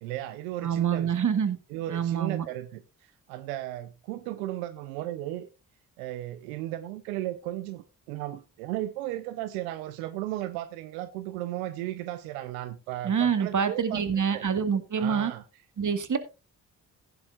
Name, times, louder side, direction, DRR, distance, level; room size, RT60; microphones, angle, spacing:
voice 1, 0.0-1.1 1.7-5.5 6.0-14.0 14.3-14.4 15.0-15.4, right 14 dB, 90° right, 0.6 m, -35 dB
voice 2, 0.6-1.6 1.9-2.5 13.0-15.3 15.8-16.2, right 7 dB, 45° right, 1.9 m, -26 dB
16.0 x 10.5 x 2.4 m
hypercardioid pair, 40°, 41 cm